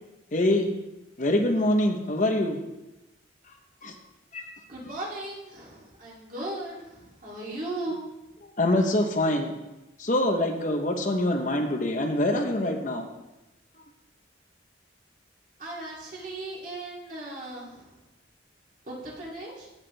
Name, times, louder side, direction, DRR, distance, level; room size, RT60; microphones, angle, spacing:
voice 1, 0.3-0.7 1.2-2.6 3.8-3.9 4.3-4.4 8.6-9.6 10.0-13.1, left 1 dB, 40° left, 3 dB, 0.9 m, -24 dB
voice 2, 4.7-8.0 15.6-17.9 18.8-19.7, right 2 dB, 45° right, -5 dB, 2.9 m, -37 dB
16.0 x 5.8 x 3.4 m, 0.98 s
head